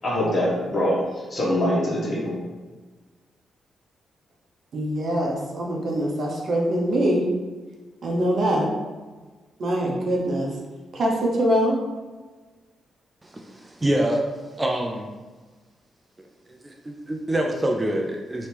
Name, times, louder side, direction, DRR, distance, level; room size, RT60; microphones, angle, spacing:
voice 1, 0.0-2.3, left 1 dB, 50° left, 1.4 m, -24 dB
voice 2, 4.7-7.2 8.0-8.7 9.6-10.5 10.9-11.8, equal, 60° right, 0.8 m, -23 dB
voice 3, 13.2-14.3 14.6-15.2 16.2-18.5, right 1 dB, 25° right, 0.4 m, -26 dB
3.1 x 2.7 x 3.4 m
hypercardioid pair, 45°, 0 cm